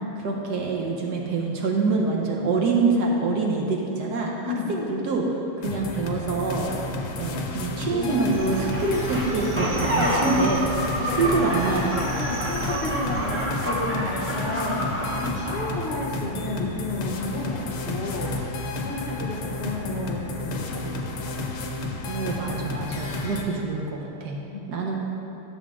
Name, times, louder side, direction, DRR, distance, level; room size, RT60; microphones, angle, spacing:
voice 1, 0.2-6.7 7.2-10.6 11.1-12.2 22.1-24.4 24.7-25.0, right 3 dB, 60° right, -1 dB, 1.3 m, -25 dB
sound 1, 5.6-23.4, left 2 dB, 80° left, 1.7 m, -32 dB
voice 2, 7.9-8.3 9.9-10.5 11.0-11.6 12.2-14.9 15.2-18.3 18.7-21.5 24.5-24.7, left 2 dB, 45° left, -3 dB, 0.9 m, -32 dB
Cricket, 8.3-13.5, right 4 dB, 75° right, 1.5 m, -36 dB
sound 2, 8.5-15.8, equal, 10° right, 0.6 m, -29 dB
11.5 x 7.2 x 3.7 m, 3.0 s
omnidirectional pair, 2.4 m